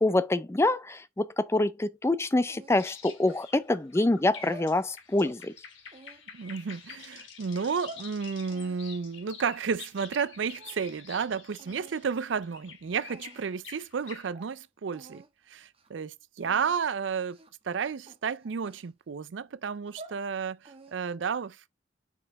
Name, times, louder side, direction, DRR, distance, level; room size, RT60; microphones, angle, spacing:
voice 1, 0.0-5.5, left 2 dB, 15° left, 0.4 m, -26 dB
sound 1, 2.5-3.8 4.3-5.4 5.9-7.0 7.5-8.1 8.5-10.3 10.5-11.2 11.6-12.0 12.7-12.8 13.1-13.6 14.0-14.1 14.3-14.5 14.9-15.3 15.6-15.9 16.4-16.8 17.3-17.6 18.1-19.2 19.7-20.2 20.6-21.2, right 2 dB, 30° right, 1.0 m, -50 dB
sound 2, 2.8-14.3, left 6 dB, 85° left, 2.0 m, -48 dB
voice 2, 6.3-17.4 17.6-21.7, right 6 dB, 70° right, 0.4 m, -32 dB
5.3 x 4.6 x 4.6 m
head